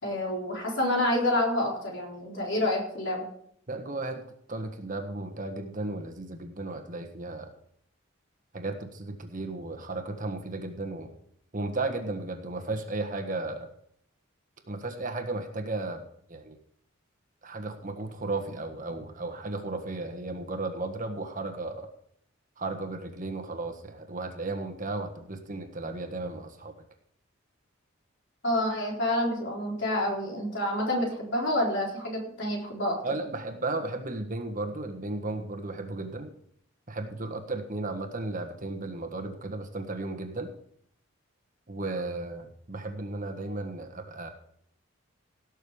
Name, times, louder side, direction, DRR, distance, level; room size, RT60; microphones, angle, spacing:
voice 1, 0.0-3.3 28.4-33.0, left 1 dB, 60° left, -1 dB, 4.1 m, -28 dB
voice 2, 3.7-7.5 8.5-11.1 11.5-13.7 14.7-16.0 16.3-16.6 17.4-21.9 22.6-26.7 33.0-36.3 36.9-40.5 41.7-44.3, right 2 dB, 40° right, 6 dB, 1.5 m, -34 dB
17.5 x 6.6 x 5.0 m, 0.66 s
head